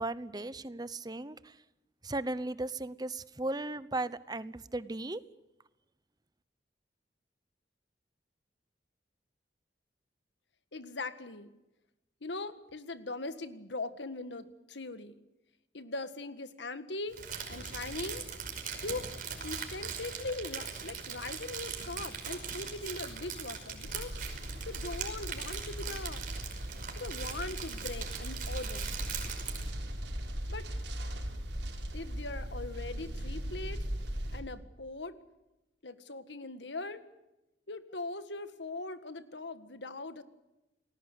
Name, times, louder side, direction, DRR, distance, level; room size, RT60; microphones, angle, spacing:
voice 1, 0.0-1.5 2.0-5.2, right 2 dB, 25° right, 16 dB, 0.9 m, -36 dB
voice 2, 10.7-11.5 12.2-15.2 15.7-17.2 17.5-18.2 18.8-19.1 19.4-24.2 24.7-26.2 27.0-28.9 30.5-30.7 31.9-33.8 34.3-35.2 35.8-37.0 37.7-40.2, left 2 dB, 85° left, 11 dB, 1.8 m, -40 dB
Crumpling crinkling, 17.1-29.7, right 6 dB, 50° right, 5.3 m, -40 dB
sound 1, 23.8-34.4, equal, 80° right, 4.6 m, -39 dB
29.0 x 20.0 x 8.3 m, 0.98 s
head